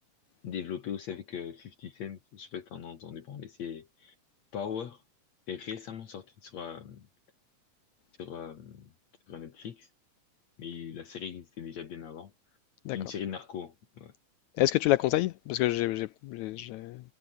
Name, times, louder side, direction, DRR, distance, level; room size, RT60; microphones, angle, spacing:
voice 1, 0.4-4.1 4.5-5.0 5.5-7.1 8.2-8.9 9.3-9.9 10.6-12.3 12.9-14.1, left 8 dB, 55° left, 2.8 m, -40 dB
voice 2, 14.6-17.0, left 16 dB, 80° left, 1.7 m, -28 dB
omnidirectional pair, 3.9 m